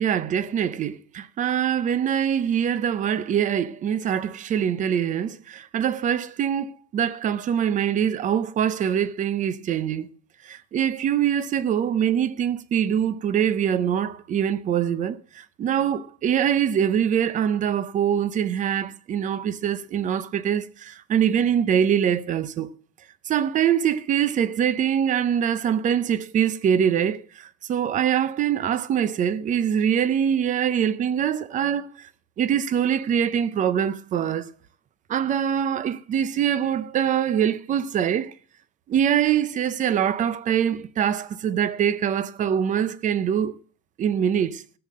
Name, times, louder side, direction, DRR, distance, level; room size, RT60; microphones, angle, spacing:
voice 1, 0.0-10.1 10.4-22.7 23.3-32.1 32.4-34.5 35.1-38.3 38.9-43.5 44.0-44.6, right 9 dB, 20° right, 0.5 m, -24 dB
15.5 x 6.7 x 7.4 m
cardioid pair, 170°, 35 cm